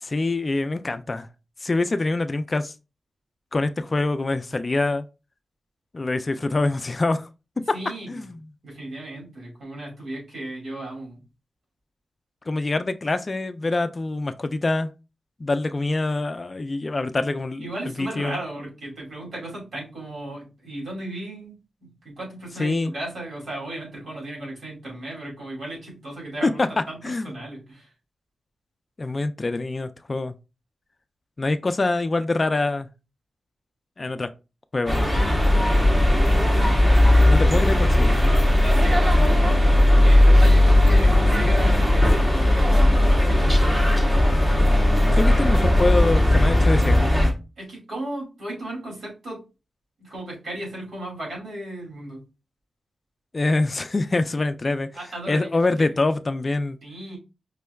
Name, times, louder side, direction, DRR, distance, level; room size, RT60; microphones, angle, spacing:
voice 1, 0.0-1.3 1.6-2.7 3.5-5.0 5.9-7.3 8.1-8.4 12.5-14.9 15.4-17.7 18.0-18.4 22.6-22.9 26.4-27.3 29.0-30.3 31.4-32.9 34.0-34.3 34.7-35.0 37.2-38.2 45.1-47.1 53.3-54.9 55.3-56.8, left 2 dB, 30° left, 0.3 m, -25 dB
voice 2, 7.7-8.3 8.6-11.2 17.6-27.9 37.1-37.6 38.2-39.6 40.0-43.7 47.6-49.4 50.0-52.2 54.9-55.5 55.8-55.9 56.8-57.2, right 1 dB, 70° right, 2.5 m, -35 dB
sound 1, 34.9-47.3, left 1 dB, 10° right, 1.1 m, -17 dB
5.1 x 3.2 x 2.3 m
wide cardioid pair, 120°, 0 cm